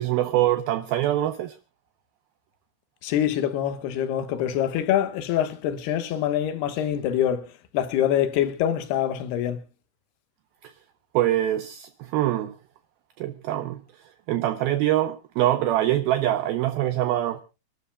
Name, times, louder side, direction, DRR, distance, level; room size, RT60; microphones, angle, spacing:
voice 1, 0.0-1.6 10.6-10.7 11.1-12.5 13.2-17.4, right 13 dB, 75° right, 2.4 m, -24 dB
voice 2, 3.0-9.6, left 10 dB, 75° left, 3.2 m, -25 dB
29.5 x 12.5 x 2.2 m
omnidirectional pair, 4.9 m